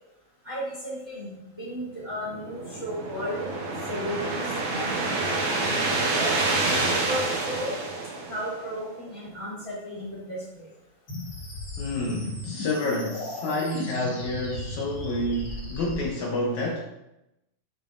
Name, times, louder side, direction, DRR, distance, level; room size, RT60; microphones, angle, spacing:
voice 1, 0.4-3.5 3.9-4.4 4.7-6.4 6.9-7.7 8.3-10.7, equal, 10° right, -8 dB, 1.9 m, -34 dB
sound 1, 2.3-8.8, right 3 dB, 65° right, 1.2 m, -28 dB
sound 2, 11.1-16.0, left 2 dB, 45° left, 1.5 m, -35 dB
voice 2, 11.8-16.8, left 1 dB, 70° left, -2 dB, 2.0 m, -29 dB
8.0 x 6.9 x 2.5 m, 0.89 s
omnidirectional pair, 3.9 m